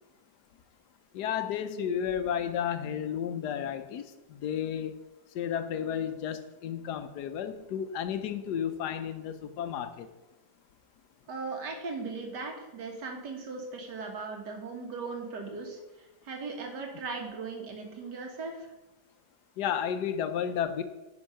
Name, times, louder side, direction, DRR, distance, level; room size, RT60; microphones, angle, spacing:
voice 1, 1.1-5.0 5.3-10.1 19.6-20.8, left 8 dB, 80° left, 10 dB, 1.2 m, -32 dB
voice 2, 11.3-18.7, right 4 dB, 85° right, 2 dB, 2.1 m, -38 dB
9.8 x 4.5 x 5.6 m, 1.1 s
omnidirectional pair, 1.8 m